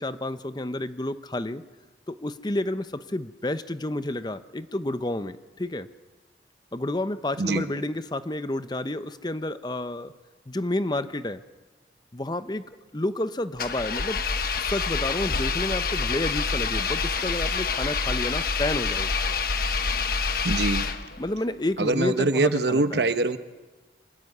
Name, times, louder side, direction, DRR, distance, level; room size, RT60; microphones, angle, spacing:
voice 1, 0.0-1.6 2.1-5.9 6.7-10.1 10.5-11.4 12.1-12.6 12.9-14.2 14.6-19.1 21.2-23.1, left 1 dB, 25° left, 12 dB, 0.7 m, -30 dB
Engine, 13.6-21.3, left 4 dB, 55° left, 1.1 m, -27 dB
voice 2, 20.4-20.9 21.8-23.4, right 2 dB, 65° right, 10 dB, 1.0 m, -23 dB
25.0 x 13.5 x 9.7 m, 1.3 s
head